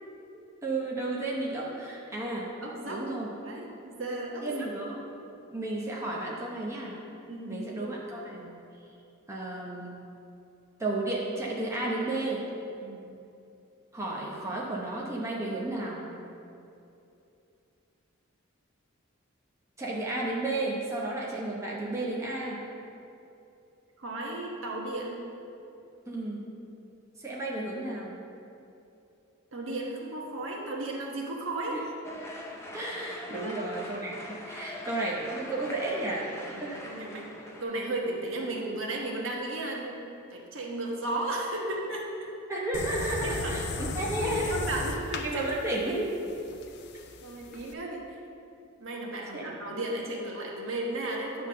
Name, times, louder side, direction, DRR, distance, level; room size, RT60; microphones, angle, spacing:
voice 1, 0.3-2.5 2.9-3.3 4.4-5.0 5.5-7.0 7.5-8.5 9.3-9.9 10.8-12.4 13.9-16.0 19.8-22.6 26.1-26.5 27.2-28.2 31.7-31.8 32.7-36.9 42.5-44.6 45.2-46.2 49.3-49.5, right 2 dB, 15° right, -4 dB, 0.9 m, -33 dB
voice 2, 2.6-3.1 3.4-4.7 7.3-8.0 12.8-13.1 24.0-25.2 29.5-31.8 33.3-33.7 36.5-40.0 40.3-42.1 43.2-43.5 44.2-45.5 47.2-48.1 48.8-51.5, right 2 dB, 70° right, -2 dB, 1.2 m, -35 dB
sound 1, 32.0-37.6, equal, 15° left, 0.7 m, -42 dB
sound 2, 42.7-47.7, left 3 dB, 55° left, 0.5 m, -36 dB
9.7 x 3.5 x 6.7 m, 2.7 s
head